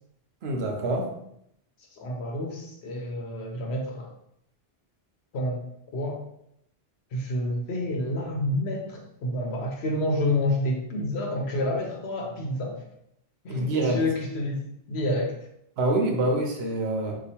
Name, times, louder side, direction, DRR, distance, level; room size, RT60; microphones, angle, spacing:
voice 1, 0.4-1.1 13.5-14.0 15.8-17.2, right 2 dB, 75° right, 2 dB, 0.9 m, -26 dB
voice 2, 1.9-4.1 5.3-5.6 5.9-6.2 7.1-12.8 13.4-14.6 14.9-15.4, left 1 dB, 80° left, 1 dB, 1.0 m, -29 dB
2.9 x 2.4 x 4.2 m, 0.75 s
omnidirectional pair, 1.1 m